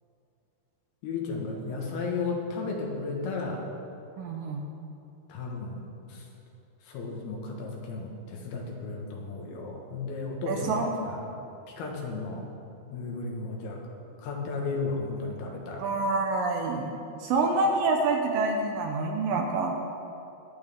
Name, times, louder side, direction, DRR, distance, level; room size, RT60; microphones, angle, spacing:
voice 1, 1.0-3.6 5.3-6.3 6.8-11.2 11.8-12.5 12.9-13.8 14.2-15.9, left 3 dB, 75° left, -1 dB, 3.4 m, -34 dB
voice 2, 4.2-4.6 10.5-10.9 15.8-19.8, right 3 dB, 70° right, 2 dB, 2.3 m, -27 dB
22.0 x 8.9 x 3.6 m, 2.7 s
omnidirectional pair, 4.6 m